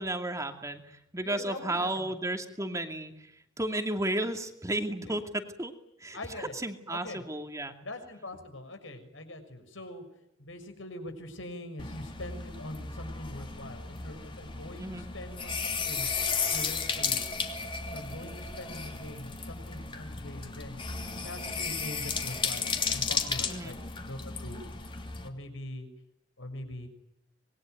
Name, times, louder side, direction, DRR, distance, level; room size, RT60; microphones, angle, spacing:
voice 1, 0.0-5.7 6.0-7.7 14.8-15.0 23.5-23.8, right 1 dB, 15° right, 5 dB, 2.5 m, -33 dB
voice 2, 1.2-2.1 4.9-5.2 6.1-6.5 6.9-7.2 7.8-10.0 10.4-16.1 16.5-17.2 17.9-20.8 21.2-24.6 25.2-25.9 26.4-26.9, left 1 dB, 75° left, 7 dB, 6.5 m, -43 dB
sound 1, 11.8-25.3, left 5 dB, 25° left, 2.9 m, -34 dB
26.0 x 22.0 x 9.4 m, 0.82 s
head